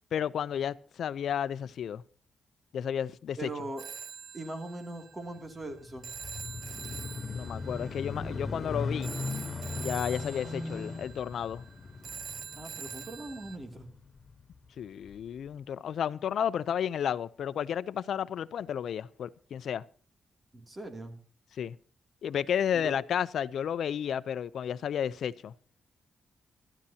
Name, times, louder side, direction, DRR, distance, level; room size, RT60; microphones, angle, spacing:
voice 1, 0.1-2.0 2.7-3.5 7.3-9.1 9.7-11.6 14.8-19.8 21.6-21.8 22.2-25.5, left 9 dB, 80° left, 0.6 m, -32 dB
voice 2, 3.4-3.8 4.3-6.1 12.5-13.9 20.5-21.2 22.7-22.9, right 2 dB, 25° right, 2.7 m, -40 dB
Telephone, 3.8-13.6, right 7 dB, 80° right, 1.0 m, -45 dB
sound 1, 5.6-14.4 15.0-15.2, left 3 dB, 40° left, 3.4 m, -38 dB
26.5 x 13.0 x 2.9 m
cardioid pair, 105°, 0 cm